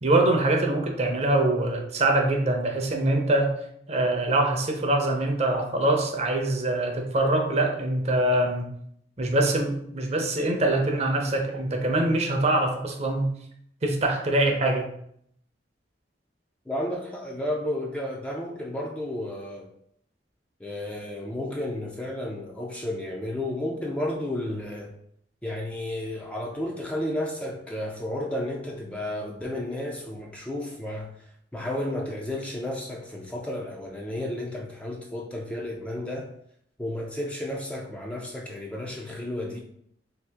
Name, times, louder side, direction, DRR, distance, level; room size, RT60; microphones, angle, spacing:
voice 1, 0.0-3.5 3.9-8.7 9.2-13.3 13.8-14.9, right 2 dB, 40° right, 3 dB, 0.6 m, -24 dB
voice 2, 16.7-19.7 20.6-24.9 25.4-31.1 31.5-36.3 36.8-39.6, left 1 dB, 5° left, -1 dB, 0.4 m, -32 dB
3.2 x 2.8 x 3.4 m, 0.69 s
head